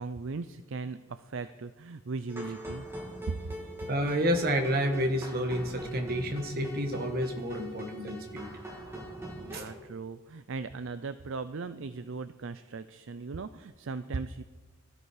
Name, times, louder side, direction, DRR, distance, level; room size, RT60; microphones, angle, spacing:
voice 1, 0.0-2.9 3.3-3.4 9.3-14.4, right 4 dB, 60° right, 12 dB, 0.5 m, -38 dB
sound 1, 2.3-9.8, right 1 dB, 10° right, 2.7 m, -42 dB
voice 2, 3.9-8.5 9.5-9.7, equal, 45° right, 4 dB, 1.7 m, -30 dB
18.5 x 13.5 x 4.9 m, 1.4 s
head